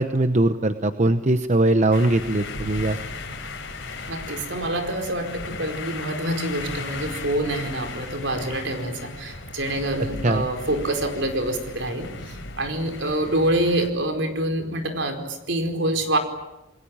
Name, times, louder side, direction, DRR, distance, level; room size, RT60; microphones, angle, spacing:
voice 1, 0.0-3.0 10.2-10.5, right 2 dB, 35° right, 9 dB, 1.0 m, -21 dB
sound 1, 1.9-13.9, left 3 dB, 65° left, 6.0 m, -36 dB
voice 2, 4.1-16.2, right 1 dB, 65° right, 6 dB, 4.7 m, -26 dB
29.0 x 22.0 x 8.8 m, 0.96 s
head